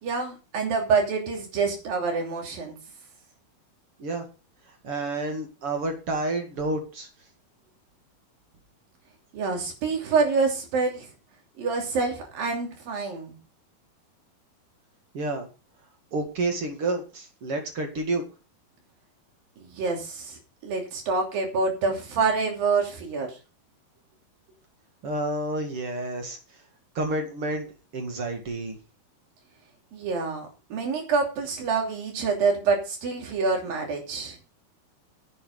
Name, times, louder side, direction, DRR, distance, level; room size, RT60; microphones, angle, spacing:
voice 1, 0.0-2.8 9.3-11.1 11.6-13.4 19.6-23.4 29.9-34.4, right 4 dB, 70° right, 2 dB, 4.6 m, -27 dB
voice 2, 4.8-7.1 15.1-15.5 16.1-18.2 25.0-26.4 27.0-28.8, right 2 dB, 45° right, 4 dB, 2.5 m, -29 dB
11.0 x 8.6 x 5.0 m, 0.33 s
omnidirectional pair, 4.3 m